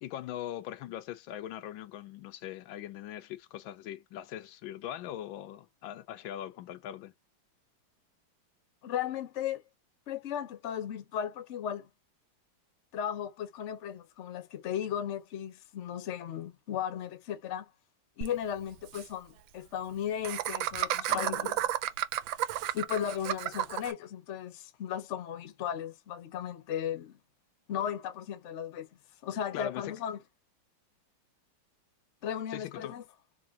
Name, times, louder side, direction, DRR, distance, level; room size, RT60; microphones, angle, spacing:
voice 1, 0.0-7.1 21.1-21.6 29.5-30.0 32.5-33.0, left 12 dB, 90° left, 1.4 m, -41 dB
voice 2, 8.8-9.6 10.1-11.9 12.9-17.7 18.2-21.5 22.7-27.2 27.7-28.9 29.2-30.2 32.2-33.0, left 9 dB, 50° left, 0.9 m, -36 dB
Laughter, 18.2-18.3 18.6-18.7 18.9-19.1 20.2-23.9, right 12 dB, 85° right, 1.3 m, -32 dB
3.7 x 2.9 x 2.7 m
omnidirectional pair, 2.1 m